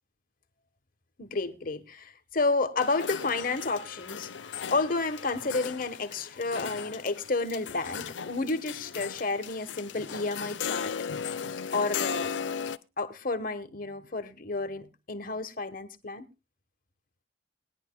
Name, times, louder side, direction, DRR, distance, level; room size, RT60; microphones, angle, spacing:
voice 1, 1.2-10.9 11.2-11.3 11.7-12.3 13.0-16.2, left 3 dB, 50° left, 1.3 m, -31 dB
sound 1, 2.8-12.8, left 7 dB, 85° left, 0.6 m, -37 dB
21.0 x 10.5 x 2.3 m
head